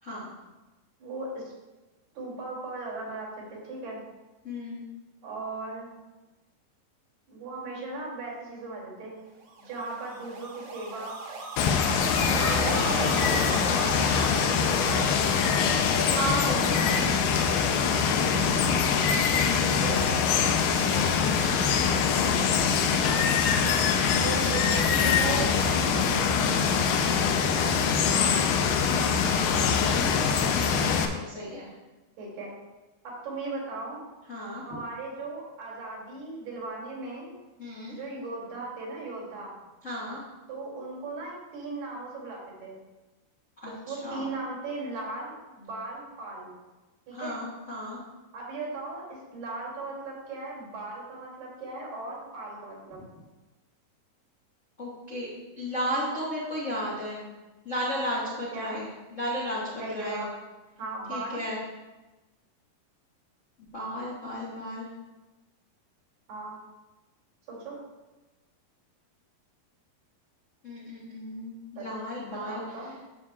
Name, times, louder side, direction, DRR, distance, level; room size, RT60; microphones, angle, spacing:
voice 1, 1.0-1.4 2.2-4.0 5.2-6.0 7.3-9.2 9.6-11.2 12.2-15.5 16.5-18.7 19.6-20.0 20.6-23.3 24.2-27.2 27.5-27.8 29.9-30.2 32.2-32.5 33.0-34.0 34.7-37.3 37.9-39.6 40.5-42.8 43.9-46.5 47.1-47.4 48.3-53.1 58.5-58.8 59.8-60.3 60.8-61.4 66.3-66.6 67.5-67.8 71.8-71.9 72.2-72.9, right 3 dB, 80° right, -5 dB, 4.7 m, -38 dB
voice 2, 4.4-4.8 16.1-17.2 18.4-19.8 23.6-24.0 28.1-29.9 30.2-31.7 34.3-34.6 37.6-38.0 39.8-40.2 43.6-44.3 47.1-48.0 54.8-55.3 55.6-57.2 57.6-60.3 61.1-61.6 63.6-64.9 70.6-72.6, equal, 70° left, -7 dB, 0.7 m, -35 dB
sound 1, 9.6-18.8, right 3 dB, 55° right, 2.1 m, -37 dB
Water, 11.6-31.1, left 6 dB, 85° left, 2.6 m, -24 dB
12.0 x 6.9 x 2.4 m, 1.1 s
omnidirectional pair, 4.5 m